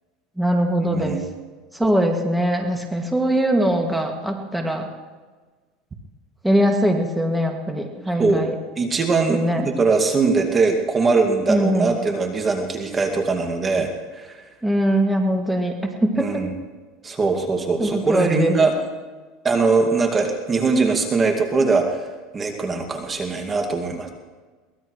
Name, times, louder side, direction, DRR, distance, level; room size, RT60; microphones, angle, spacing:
voice 1, 0.4-1.2 1.7-4.9 6.4-8.5 9.3-9.7 11.5-11.9 14.6-16.4 17.8-18.5, right 1 dB, 5° right, 2 dB, 2.2 m, -21 dB
voice 2, 0.9-1.2 8.2-8.4 8.8-14.4 16.2-16.5 17.0-18.7 19.4-22.1 22.3-24.1, right 4 dB, 25° right, 3 dB, 2.1 m, -21 dB
23.0 x 19.5 x 3.2 m, 1.3 s
supercardioid pair, 110°, 0 cm